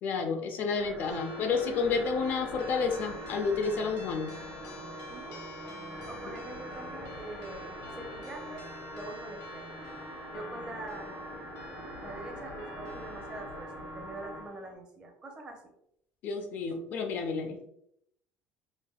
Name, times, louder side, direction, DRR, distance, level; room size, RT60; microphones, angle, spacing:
voice 1, 0.0-4.3 16.2-17.6, left 5 dB, 50° left, 5 dB, 0.4 m, -30 dB
sound 1, 0.8-14.5, right 1 dB, 50° right, 1.0 m, -44 dB
sound 2, 1.0-14.7, left 2 dB, 75° left, 0.7 m, -47 dB
Mallet percussion, 1.1-5.7, left 3 dB, 85° right, 1.1 m, -48 dB
voice 2, 5.1-5.4 6.1-9.8 10.3-11.2 12.0-15.6, right 2 dB, 25° right, 1 dB, 0.6 m, -44 dB
3.3 x 2.4 x 2.3 m, 0.74 s
cardioid pair, 155°, 4 cm